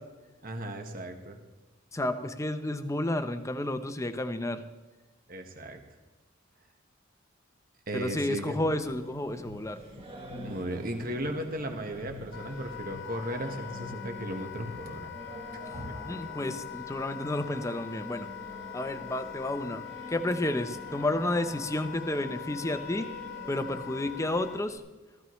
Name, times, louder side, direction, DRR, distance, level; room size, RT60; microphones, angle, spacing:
voice 1, 0.4-1.4 5.3-5.8 7.9-8.6 10.4-15.1 15.7-16.2, right 1 dB, 50° right, 4 dB, 1.4 m, -36 dB
voice 2, 1.9-4.6 7.9-9.8 16.0-18.3 18.7-23.1 23.5-24.8, left 1 dB, 15° left, 9 dB, 0.7 m, -31 dB
sound 1, 8.5-15.1, left 4 dB, 90° left, 0.7 m, -50 dB
Singing, 8.8-24.8, right 1 dB, 30° right, 1.5 m, -47 dB
Wind instrument woodwind instrument, 12.3-24.6, left 10 dB, 60° left, 0.9 m, -42 dB
15.5 x 14.0 x 3.2 m, 1.2 s
head